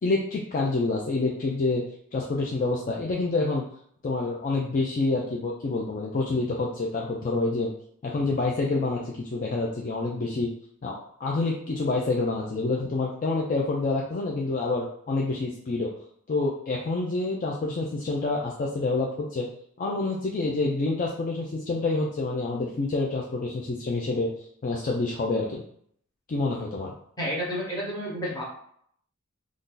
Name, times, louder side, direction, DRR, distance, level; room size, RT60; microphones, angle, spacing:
voice 1, 0.0-1.8 2.1-3.6 4.0-7.7 8.0-10.5 10.8-15.9 16.3-19.5 19.8-24.3 24.6-25.6 26.3-26.9, left 3 dB, 40° left, -2 dB, 0.4 m, -27 dB
voice 2, 27.2-28.4, equal, 20° left, -4 dB, 1.0 m, -30 dB
2.6 x 2.4 x 3.7 m, 0.66 s
head